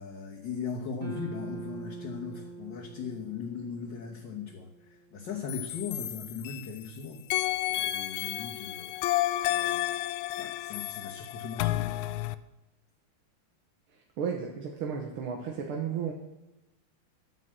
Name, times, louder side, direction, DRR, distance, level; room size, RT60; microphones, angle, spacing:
voice 1, 0.0-7.2 7.7-9.9 10.4-12.1, left 5 dB, 60° left, -1 dB, 1.8 m, -39 dB
sound 1, 1.0-5.3, right 4 dB, 50° right, 2.2 m, -44 dB
sound 2, 5.5-6.9 7.3-12.4, left 15 dB, 75° left, 1.3 m, -31 dB
voice 2, 13.9-16.1, right 6 dB, 80° right, 1 dB, 2.2 m, -34 dB
11.0 x 9.4 x 7.5 m, 0.98 s
omnidirectional pair, 2.4 m